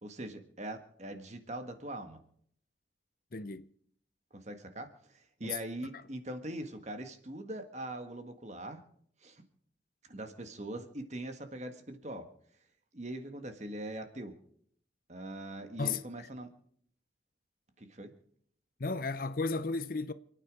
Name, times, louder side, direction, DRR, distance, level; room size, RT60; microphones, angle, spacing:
voice 1, 0.0-2.2 4.3-8.8 9.2-9.4 10.1-12.3 12.9-14.3 15.1-16.5 17.8-18.1, right 1 dB, 35° right, 1.6 m, -42 dB
voice 2, 3.3-3.7 5.4-5.6 15.8-16.0 18.8-20.1, left 4 dB, 50° left, 0.6 m, -33 dB
28.5 x 9.5 x 4.8 m
head